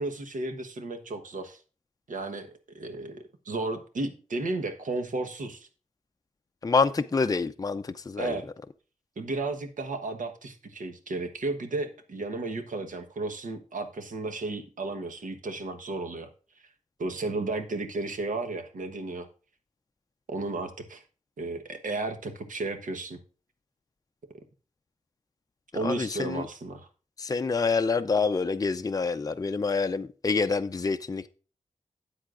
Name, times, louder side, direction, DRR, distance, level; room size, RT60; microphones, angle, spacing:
voice 1, 0.0-1.6 2.1-5.7 8.2-8.4 9.2-16.3 17.0-19.3 20.3-21.0 21.4-23.2 25.7-26.9, right 2 dB, 80° right, 1.2 m, -33 dB
voice 2, 6.6-8.4 25.8-26.5 27.2-31.3, left 4 dB, 30° left, 0.5 m, -27 dB
13.0 x 8.4 x 2.5 m
wide cardioid pair, 80°, 13 cm